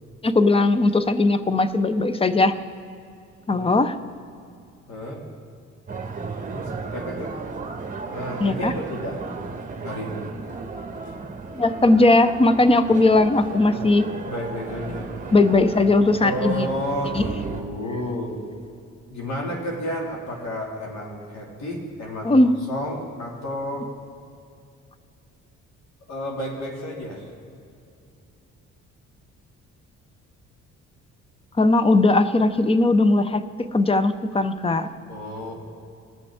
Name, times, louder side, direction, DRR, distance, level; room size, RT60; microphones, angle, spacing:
voice 1, 0.2-2.6 3.5-4.0 8.4-8.7 11.6-14.1 15.3-16.7 17.2-17.3 22.2-22.5 31.6-33.4 33.7-34.9, left 2 dB, 20° left, 12 dB, 0.6 m, -18 dB
voice 2, 4.9-5.2 6.5-7.3 8.1-9.2 9.8-10.3 13.7-13.9 14.3-15.1 16.2-18.4 19.1-23.9 26.1-27.3 35.1-35.5, equal, 65° left, -2 dB, 2.3 m, -31 dB
sound 1, 5.9-17.6, right 4 dB, 25° right, 1.3 m, -34 dB
20.0 x 6.8 x 3.5 m, 2.4 s
cardioid pair, 90°, 30 cm